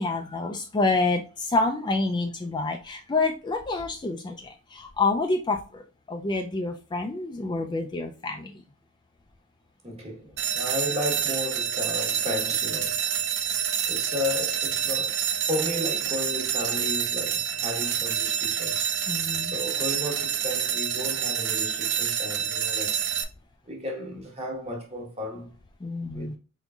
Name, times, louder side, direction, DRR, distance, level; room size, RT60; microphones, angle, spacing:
voice 1, 0.0-5.8 6.1-8.6 19.1-19.5 25.8-26.4, left 3 dB, 20° left, 0.3 m, -28 dB
voice 2, 9.8-13.0 13.9-18.9 19.4-23.0 23.6-25.5 26.1-26.3, left 1 dB, 30° right, 1.2 m, -34 dB
sound 1, 10.4-23.2, right 8 dB, 55° right, 0.5 m, -27 dB
4.0 x 3.7 x 2.3 m
head